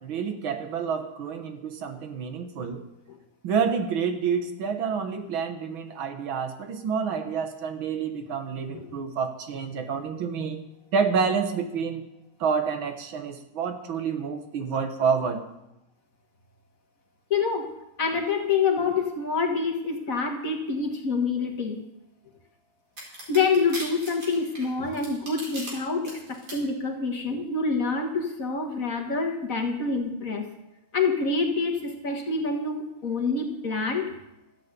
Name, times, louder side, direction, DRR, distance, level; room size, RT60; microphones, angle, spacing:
voice 1, 0.0-2.8 3.4-10.6 10.9-12.1 12.4-15.4, right 6 dB, 80° right, 6 dB, 2.0 m, -28 dB
voice 2, 17.3-17.7 18.0-21.8 23.3-30.5 30.9-34.1, left 4 dB, 45° left, 2 dB, 1.9 m, -26 dB
sound 1, 23.0-25.7 26.0-26.5, right 1 dB, 50° right, 4.8 m, -38 dB
13.5 x 8.2 x 8.2 m, 0.90 s
omnidirectional pair, 2.2 m